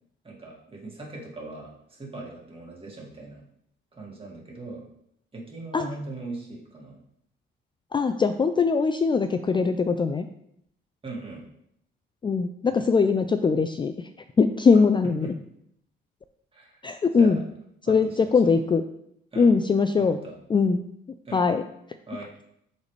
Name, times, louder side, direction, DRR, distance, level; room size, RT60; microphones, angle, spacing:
voice 1, 0.2-3.4 3.9-4.8 5.3-7.0 11.0-11.4 15.2-15.3 16.5-16.8 17.2-17.4 17.8-18.5 19.3-19.5 20.0-20.4 21.2-21.4 22.1-22.4, right 2 dB, 25° right, -2 dB, 2.2 m, -40 dB
voice 2, 7.9-10.3 12.2-13.9 14.4-15.3 16.8-17.4 17.9-18.8 19.4-20.2 20.5-20.8 21.3-21.6, left 5 dB, 25° left, 8 dB, 0.4 m, -21 dB
8.2 x 4.0 x 3.2 m, 0.74 s
cardioid pair, 90°, 20 cm